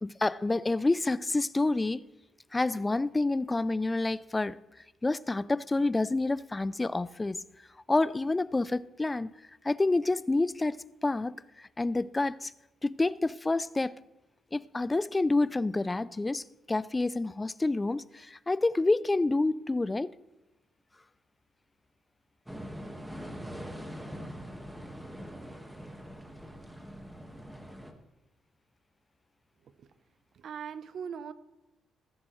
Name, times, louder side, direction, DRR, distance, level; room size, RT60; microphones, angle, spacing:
voice 1, 0.0-2.0 2.5-4.6 5.0-7.4 7.9-9.3 9.6-12.5 12.8-13.9 14.5-20.1, left 2 dB, 20° left, 0.4 m, -28 dB
sound 1, 22.5-27.9, equal, 5° right, 1.7 m, -43 dB
voice 2, 30.4-31.3, right 7 dB, 60° right, 0.7 m, -40 dB
15.5 x 14.0 x 3.2 m
cardioid pair, 90°, 0 cm